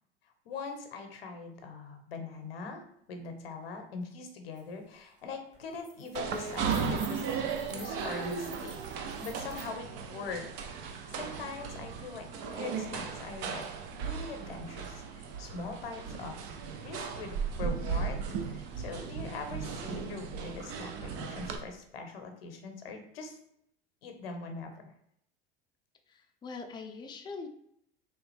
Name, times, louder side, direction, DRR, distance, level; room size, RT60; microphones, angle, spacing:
voice 1, 0.4-2.8 3.1-8.8 9.2-10.4 10.7-13.7 13.9-16.4 16.8-23.4 24.0-24.8, left 4 dB, 80° left, 5 dB, 0.7 m, -42 dB
sound 1, 4.6-4.7 5.0-5.2 5.5-9.7, right 2 dB, 25° right, 1.2 m, -51 dB
sound 2, 6.1-21.6, right 6 dB, 55° right, 0.6 m, -36 dB
voice 2, 26.1-27.5, left 4 dB, 15° left, 4 dB, 0.5 m, -42 dB
3.4 x 3.1 x 3.2 m, 0.73 s
hypercardioid pair, 75°, 29 cm